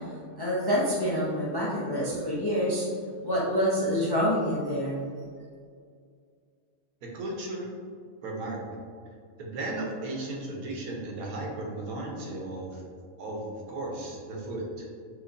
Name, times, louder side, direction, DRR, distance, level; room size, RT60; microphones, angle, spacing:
voice 1, 0.4-2.9 3.2-5.0, equal, 30° left, -6 dB, 0.4 m, -27 dB
voice 2, 7.1-7.7 8.2-8.7 9.4-12.8 13.2-14.9, right 2 dB, 90° right, -1 dB, 1.4 m, -35 dB
6.0 x 2.9 x 2.6 m, 2.1 s
omnidirectional pair, 1.5 m